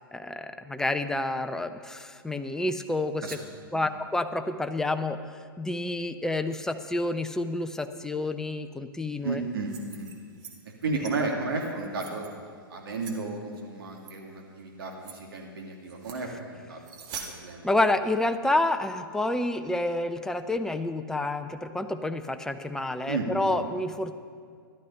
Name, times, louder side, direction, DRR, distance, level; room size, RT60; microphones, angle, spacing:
voice 1, 0.1-3.2 3.7-5.2 5.6-9.4 10.9-11.3 17.6-24.1, left 2 dB, 5° left, 8 dB, 0.6 m, -29 dB
voice 2, 9.2-10.1 10.8-12.2 12.7-16.8 17.2-17.7 23.1-23.3, right 4 dB, 70° right, 0 dB, 2.2 m, -33 dB
sound 1, 9.5-10.5 10.8-11.1 11.7-12.3 13.0-13.2 14.0-14.1 14.6-14.7 15.0-15.2 15.9-16.2 16.8-17.3, right 6 dB, 35° right, 1.7 m, -43 dB
14.0 x 11.5 x 5.5 m, 2.1 s
hypercardioid pair, 110°, 12 cm